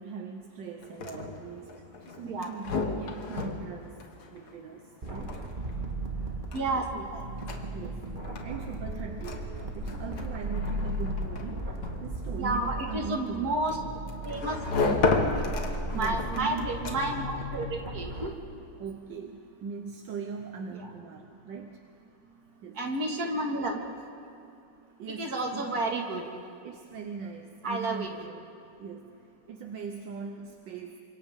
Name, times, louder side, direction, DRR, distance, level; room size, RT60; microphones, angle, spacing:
voice 1, 0.0-4.0 4.3-5.4 6.7-6.9 7.7-13.6 15.9-16.8 18.8-21.8 22.6-22.8 25.0-25.8 26.6-31.0, right 5 dB, 75° right, 4 dB, 1.7 m, -40 dB
sound 1, 0.8-17.3, left 3 dB, 60° left, 2.0 m, -35 dB
sound 2, 5.0-18.3, right 1 dB, 25° right, 1.7 m, -36 dB
voice 2, 6.5-7.2 12.4-13.8 14.3-14.6 15.9-18.3 22.8-23.8 25.1-26.2 27.6-28.1, right 2 dB, 50° right, 1 dB, 2.6 m, -31 dB
28.5 x 25.0 x 3.7 m, 2.6 s
omnidirectional pair, 2.0 m